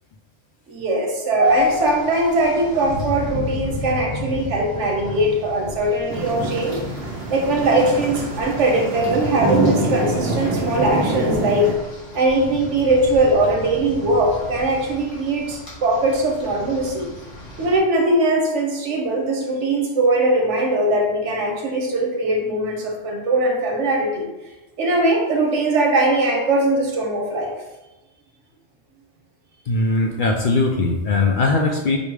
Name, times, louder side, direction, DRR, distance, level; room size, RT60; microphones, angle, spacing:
voice 1, 0.7-6.8 7.3-11.7 12.1-17.1 17.6-24.3 24.8-27.5, right 1 dB, 85° right, 1 dB, 1.2 m, -20 dB
Rain, 1.4-17.8, left 1 dB, 90° left, 1.9 m, -35 dB
sound 1, 6.1-11.7, right 2 dB, 65° right, 1.0 m, -25 dB
voice 2, 29.7-32.0, left 3 dB, 60° left, 2 dB, 0.5 m, -20 dB
5.1 x 2.0 x 4.7 m, 1.1 s
omnidirectional pair, 1.2 m